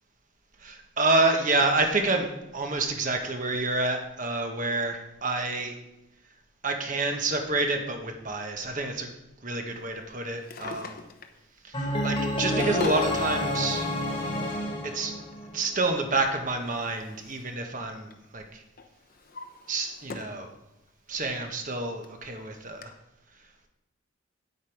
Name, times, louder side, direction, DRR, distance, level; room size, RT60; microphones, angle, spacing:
voice 1, 0.6-5.7 6.6-9.1 9.4-11.0 11.6-13.9 14.9-15.1 15.5-18.6 19.7-20.5 21.1-22.9, right 2 dB, 35° right, 4 dB, 1.1 m, -28 dB
Drawer open or close, 10.3-11.4 12.1-13.1 14.2-14.3 16.0-17.6 17.9-18.3 18.8-20.4 20.9-21.0 21.7-21.8 22.0-22.1 22.8-22.9, left 3 dB, 45° left, 0.7 m, -41 dB
sound 1, 11.7-15.8, left 1 dB, 25° left, 1.5 m, -29 dB
8.8 x 8.3 x 4.7 m, 0.93 s
head